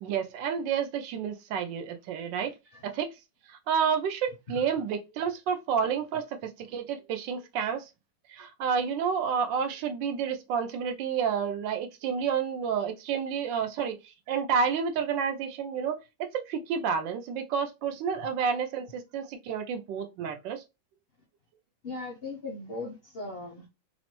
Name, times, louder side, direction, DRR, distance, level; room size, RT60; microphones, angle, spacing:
voice 1, 0.0-2.5 2.8-3.1 3.5-7.9 8.3-14.0 14.3-16.0 16.5-20.6, right 6 dB, 85° right, 1.3 m, -30 dB
voice 2, 21.8-23.7, left 3 dB, 50° left, 0.7 m, -38 dB
3.4 x 2.0 x 2.9 m
omnidirectional pair, 1.9 m